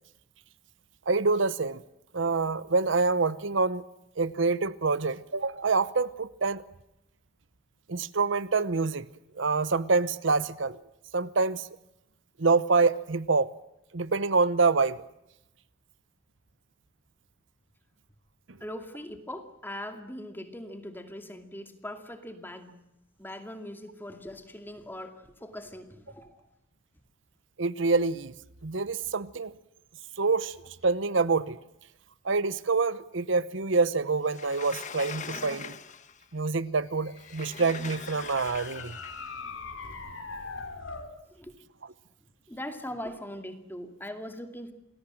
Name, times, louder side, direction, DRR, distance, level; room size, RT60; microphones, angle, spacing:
voice 1, 1.1-1.8 2.1-3.8 4.2-6.6 7.9-9.1 9.4-10.8 11.1-11.7 12.4-13.5 13.9-15.0 27.6-28.3 28.6-29.5 30.2-30.5 30.8-31.6 32.2-35.7 36.3-39.0, right 4 dB, 70° right, 0.9 m, -26 dB
voice 2, 18.6-22.7 23.2-26.5 41.3-41.6 42.5-44.7, left 1 dB, 10° left, 2.3 m, -41 dB
Sliding door, 34.3-36.2 37.2-39.3, left 6 dB, 40° left, 1.3 m, -42 dB
sound 1, 36.8-41.1, left 4 dB, 90° left, 4.2 m, -42 dB
27.5 x 20.5 x 7.7 m
head